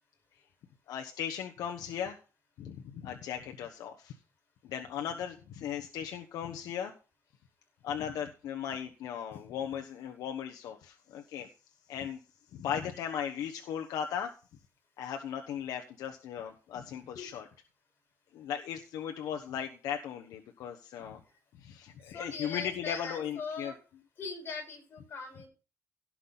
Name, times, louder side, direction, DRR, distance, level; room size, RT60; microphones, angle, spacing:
voice 1, 0.9-2.2 2.6-4.1 4.6-6.9 7.8-11.5 11.9-12.2 12.5-14.3 15.0-17.5 18.3-21.2 21.5-23.7, left 9 dB, 75° left, 4 dB, 1.1 m, -37 dB
voice 2, 22.1-23.8 24.2-25.5, left 4 dB, 35° left, 2 dB, 5.2 m, -40 dB
17.5 x 6.0 x 4.0 m, 0.34 s
cardioid pair, 180°, 6 cm